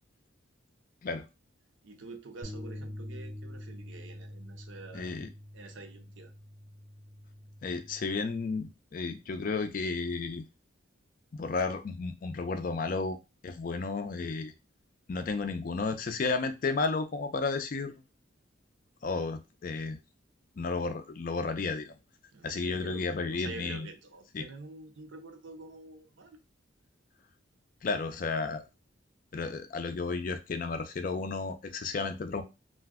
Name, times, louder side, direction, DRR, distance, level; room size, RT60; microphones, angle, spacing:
voice 1, 1.8-5.1 5.5-6.3 22.3-26.4, right 3 dB, 65° right, 0.5 m, -47 dB
sound 1, 2.4-8.7, left 1 dB, 10° left, 0.7 m, -45 dB
voice 2, 4.9-5.3 7.6-10.4 11.3-13.2 13.4-14.5 15.1-17.9 19.0-20.0 20.6-21.9 22.4-23.9 24.3-24.4 27.8-28.6 29.3-32.4, left 4 dB, 40° left, 0.3 m, -32 dB
2.5 x 2.2 x 3.4 m
head